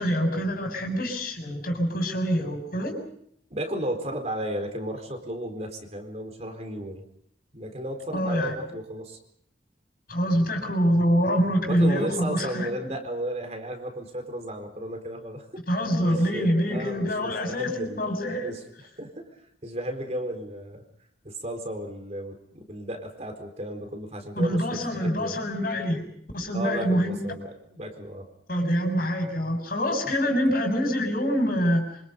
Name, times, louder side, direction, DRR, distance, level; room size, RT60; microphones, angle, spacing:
voice 1, 0.0-3.0 8.1-8.6 10.1-12.9 15.7-18.6 24.4-26.1 26.3-27.2 28.5-31.9, equal, 55° left, 4 dB, 6.7 m, -25 dB
voice 2, 3.5-7.0 7.5-9.2 11.7-15.6 16.0-18.6 19.0-20.8 21.2-25.4 26.5-28.3, right 1 dB, 35° right, 4 dB, 4.2 m, -34 dB
27.0 x 26.5 x 5.4 m, 0.70 s
head